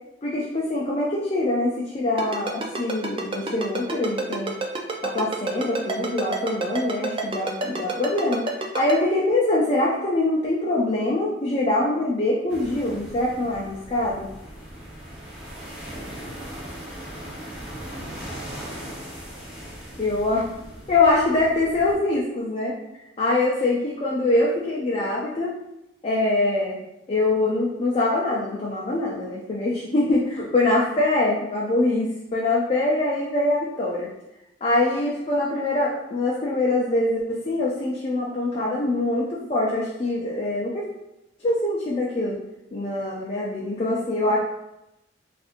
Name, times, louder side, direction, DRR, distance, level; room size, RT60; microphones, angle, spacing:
voice 1, 0.2-4.5 5.0-8.4 8.7-14.3 20.0-20.5 20.9-22.7 23.2-25.5 26.0-26.8 27.1-34.1 34.6-40.8 41.4-42.4 42.7-44.4, left 2 dB, 35° left, -4 dB, 0.4 m, -24 dB
Ringtone, 2.2-8.9, right 3 dB, 30° right, 0.4 m, -27 dB
sound 1, 12.5-21.9, equal, 5° right, 0.9 m, -39 dB
4.1 x 2.5 x 2.5 m, 0.91 s
head